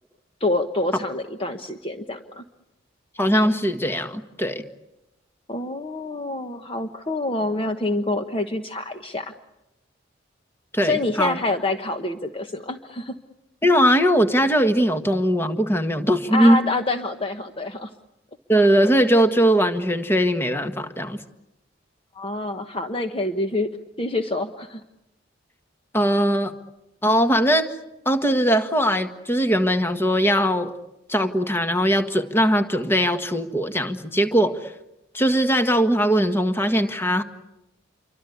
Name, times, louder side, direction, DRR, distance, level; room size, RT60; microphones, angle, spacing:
voice 1, 0.4-2.4 5.5-9.3 10.8-13.2 16.3-17.9 22.1-23.7 24.0-24.8, left 2 dB, 25° left, 6 dB, 1.1 m, -27 dB
voice 2, 3.2-4.6 10.7-11.4 13.6-16.6 18.5-21.2 25.9-26.5 27.0-27.7 28.0-30.7 31.1-34.7 35.1-37.2, equal, 10° left, 7 dB, 1.6 m, -20 dB
28.0 x 24.5 x 8.4 m, 0.91 s
head